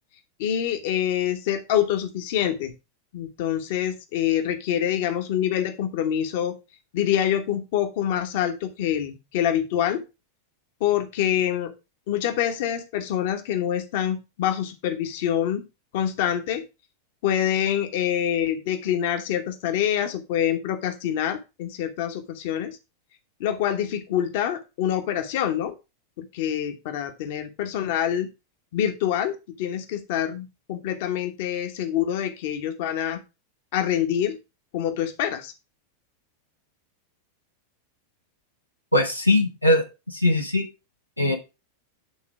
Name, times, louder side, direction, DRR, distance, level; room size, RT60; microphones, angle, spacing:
voice 1, 0.4-2.7 3.1-6.6 6.9-10.0 10.8-11.7 12.1-15.6 15.9-16.6 17.2-22.8 23.4-25.7 26.2-28.3 28.7-33.2 33.7-34.4 34.7-35.5, left 10 dB, 50° left, 8 dB, 1.1 m, -26 dB
voice 2, 38.9-39.8 40.1-40.6 41.2-41.4, left 1 dB, 90° left, 2 dB, 1.0 m, -20 dB
8.4 x 3.8 x 4.8 m, 0.27 s
figure-of-eight pair, 90°, 0 cm